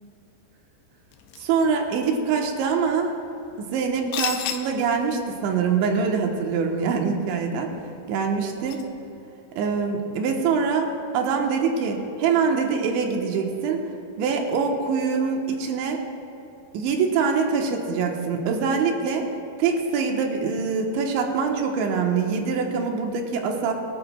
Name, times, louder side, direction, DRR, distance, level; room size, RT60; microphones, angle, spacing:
sound 1, 1.1-9.1, left 9 dB, 80° left, 2.5 m, -39 dB
voice 1, 1.4-3.1 3.6-7.7 8.1-8.9 9.6-13.8 14.2-16.0 16.7-19.3 19.6-23.7, right 5 dB, 85° right, 2 dB, 3.4 m, -24 dB
22.5 x 12.0 x 2.3 m, 2.9 s
omnidirectional pair, 5.2 m